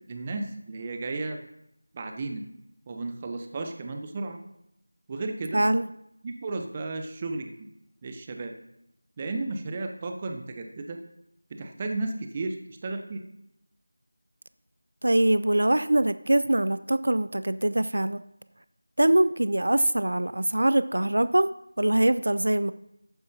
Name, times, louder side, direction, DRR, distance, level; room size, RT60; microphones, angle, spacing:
voice 1, 0.1-1.4 1.9-2.4 2.9-4.4 5.1-5.6 6.2-7.7 8.0-8.5 9.2-11.0 11.5-13.2, right 3 dB, 20° right, 4 dB, 0.8 m, -33 dB
voice 2, 5.5-5.9 15.0-18.2 19.0-21.5 21.8-22.7, right 1 dB, 70° right, 14 dB, 0.5 m, -23 dB
14.0 x 9.3 x 2.8 m, 0.78 s
figure-of-eight pair, 170°, 0 cm